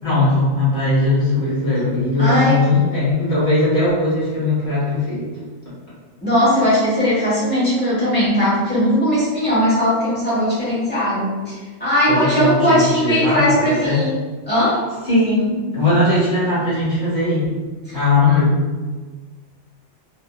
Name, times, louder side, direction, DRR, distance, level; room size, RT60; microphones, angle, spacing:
voice 1, 0.0-5.3 12.1-14.0 15.1-17.5 17.9-18.6, left 2 dB, 60° left, -11 dB, 1.8 m, -19 dB
voice 2, 2.2-2.6 6.2-11.5 11.8-14.2 14.5-14.8 17.9-18.0 18.3-18.4, equal, 10° left, -10 dB, 1.2 m, -18 dB
2.8 x 2.7 x 2.3 m, 1.3 s
omnidirectional pair, 1.2 m